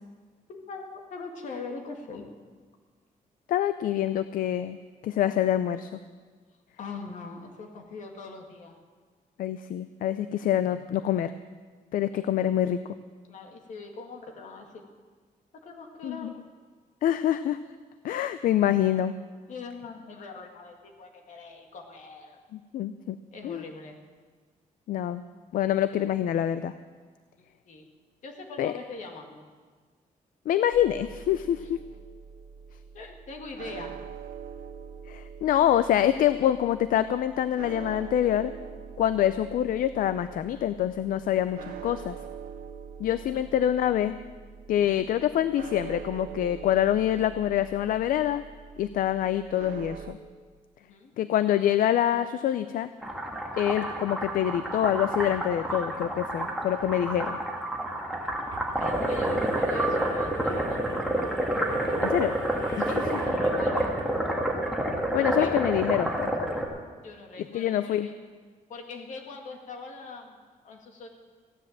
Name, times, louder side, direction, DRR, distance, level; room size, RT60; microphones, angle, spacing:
voice 1, 0.5-2.3 6.8-8.8 13.3-14.8 15.6-16.3 19.5-22.4 23.3-24.0 27.7-27.9 28.2-29.5 31.6-31.7 32.9-33.9 50.8-51.1 53.4-53.7 58.8-60.8 62.8-63.9 65.2-65.6 67.0-68.1 68.7-71.1, left 4 dB, 60° left, 2 dB, 2.2 m, -42 dB
voice 2, 3.5-4.8 5.0-6.0 9.4-11.3 11.9-12.8 16.0-16.3 17.0-17.6 18.0-19.1 22.5-23.2 23.4-23.6 24.9-25.2 25.5-26.7 28.6-28.7 30.5-31.8 35.1-38.5 39.0-42.2 43.0-44.1 44.7-48.4 48.8-50.2 51.2-52.9 53.6-57.4 62.0-62.3 62.8-63.2 65.1-66.3 67.5-68.1, left 11 dB, 75° left, 12 dB, 0.5 m, -26 dB
sound 1, 30.7-50.1, right 7 dB, 80° right, 1.1 m, -44 dB
sound 2, 53.0-66.6, right 1 dB, ahead, 1.7 m, -29 dB
sound 3, 56.8-56.9 57.2-57.3 58.0-64.4, right 4 dB, 40° right, 2.3 m, -46 dB
15.5 x 10.0 x 7.5 m, 1.5 s
wide cardioid pair, 170°, 14 cm